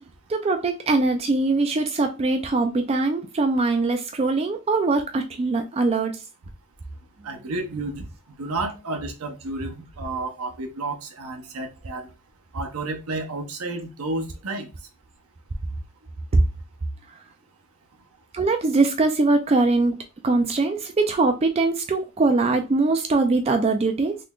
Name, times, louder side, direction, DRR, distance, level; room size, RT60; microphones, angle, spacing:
voice 1, 0.3-6.1 16.3-16.4 18.3-24.2, right 3 dB, 25° right, 0.3 m, -22 dB
voice 2, 7.2-8.1 8.4-12.1 12.5-14.7, right 2 dB, 80° right, 0.7 m, -31 dB
3.8 x 3.2 x 2.3 m
head